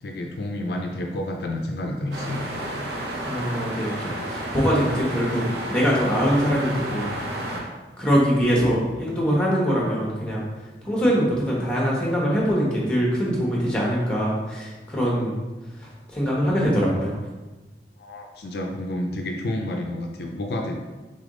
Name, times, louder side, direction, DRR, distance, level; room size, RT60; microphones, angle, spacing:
voice 1, 0.0-2.5 18.0-20.8, left 1 dB, 60° left, 2 dB, 0.4 m, -30 dB
sound 1, 2.1-7.6, right 1 dB, 70° right, 0.8 m, -31 dB
voice 2, 3.2-7.1 8.0-10.4 10.8-15.4 16.1-17.2, equal, 5° left, -4 dB, 1.0 m, -23 dB
3.9 x 3.4 x 3.7 m, 1.2 s
head